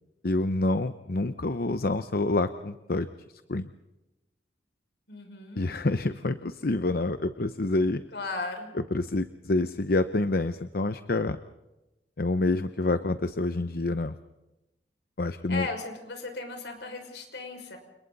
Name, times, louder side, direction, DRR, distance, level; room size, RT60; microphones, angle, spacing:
voice 1, 0.2-3.1 3.5-3.7 5.6-8.0 8.9-11.4 12.2-14.1 15.2-15.7, left 2 dB, 55° left, 10 dB, 0.8 m, -27 dB
voice 2, 5.1-5.7 8.1-8.7 15.5-17.8, left 3 dB, 80° left, 4 dB, 5.9 m, -36 dB
30.0 x 28.0 x 4.1 m, 0.98 s
head